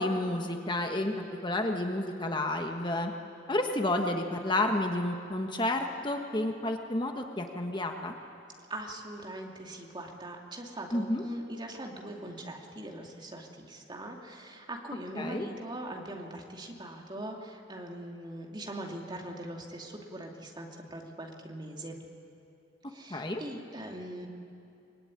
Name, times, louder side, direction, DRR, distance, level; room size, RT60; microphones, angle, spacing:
voice 1, 0.0-3.1 3.5-8.1 10.9-11.2 15.2-15.5 23.1-23.4, left 1 dB, 25° left, 4 dB, 1.3 m, -30 dB
voice 2, 8.7-22.0 22.9-24.3, right 1 dB, 25° right, 1 dB, 2.6 m, -41 dB
24.5 x 22.5 x 9.9 m, 2.6 s
head